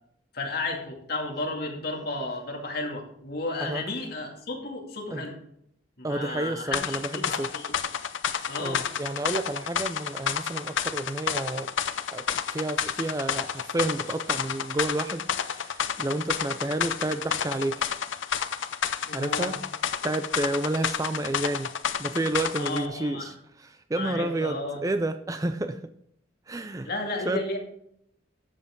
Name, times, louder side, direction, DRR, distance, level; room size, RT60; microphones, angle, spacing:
voice 1, 0.3-5.4 6.0-7.7 8.5-8.9 19.0-19.5 22.5-23.3 23.9-24.8 26.8-27.6, left 2 dB, 50° left, 0 dB, 2.4 m, -33 dB
voice 2, 6.0-7.5 8.3-11.7 12.1-17.9 19.1-19.6 20.0-21.7 22.0-25.9 26.5-26.9 27.2-27.4, right 2 dB, 15° right, 9 dB, 0.4 m, -30 dB
sound 1, 6.7-22.8, left 7 dB, 70° left, 0.6 m, -30 dB
13.0 x 7.5 x 3.7 m, 0.74 s
head